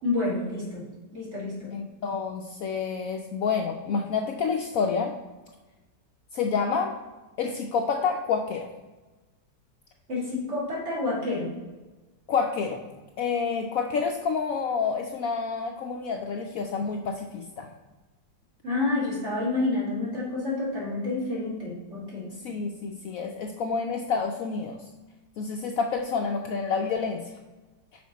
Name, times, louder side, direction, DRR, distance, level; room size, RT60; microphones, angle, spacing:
voice 1, 0.0-0.8 1.1-1.7 10.1-11.6 18.6-22.3, left 2 dB, 45° right, -5 dB, 2.5 m, -29 dB
voice 2, 1.7-5.1 6.3-6.9 7.4-8.7 12.3-12.8 13.2-17.7 22.4-24.8 25.4-27.2, left 5 dB, 70° left, 3 dB, 0.9 m, -28 dB
6.0 x 4.9 x 4.1 m, 1.2 s
omnidirectional pair, 1.8 m